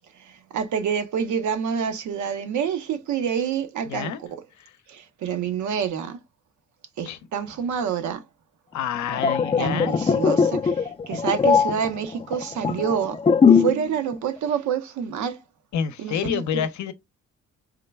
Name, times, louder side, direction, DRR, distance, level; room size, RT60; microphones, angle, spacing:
voice 1, 0.5-4.1 4.9-6.2 7.0-8.2 9.6-13.2 13.5-15.4 16.0-16.6, right 7 dB, 70° right, 0.8 m, -27 dB
voice 2, 3.9-4.2 4.6-4.7 7.0-7.2 8.7-9.9 15.7-16.9, left 8 dB, 70° left, 0.7 m, -28 dB
sound 1, 9.0-13.9 14.1-14.4, left 6 dB, 20° left, 0.4 m, -20 dB
3.6 x 2.2 x 3.3 m
cardioid pair, 90°, 30 cm